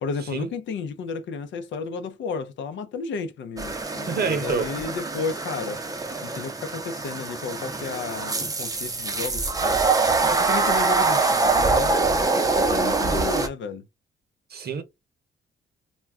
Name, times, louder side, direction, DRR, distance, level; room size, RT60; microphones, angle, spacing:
voice 1, 0.0-5.8 6.2-9.8 10.2-13.9, left 5 dB, 70° left, 0.6 m, -33 dB
sound 1, 3.6-13.5, right 3 dB, 20° right, 0.5 m, -24 dB
voice 2, 4.1-4.9 14.5-14.8, right 6 dB, 50° right, 0.8 m, -27 dB
2.2 x 2.2 x 3.5 m
cardioid pair, 90°, 20 cm